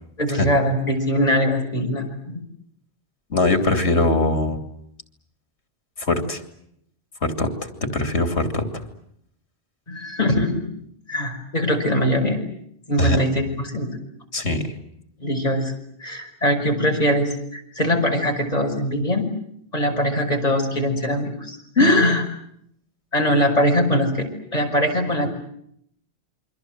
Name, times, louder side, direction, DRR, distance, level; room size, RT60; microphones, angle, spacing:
voice 1, 0.2-2.4 9.9-10.6 11.1-12.4 12.9-13.9 15.2-15.7 16.0-19.2 19.7-22.2 23.1-25.3, equal, 35° left, 2 dB, 5.8 m, -22 dB
voice 2, 3.3-4.6 6.0-6.4 7.2-8.9 13.0-13.2 14.3-14.7 21.8-22.1, left 2 dB, 85° left, 7 dB, 3.1 m, -21 dB
28.5 x 24.0 x 7.9 m, 0.72 s
omnidirectional pair, 1.1 m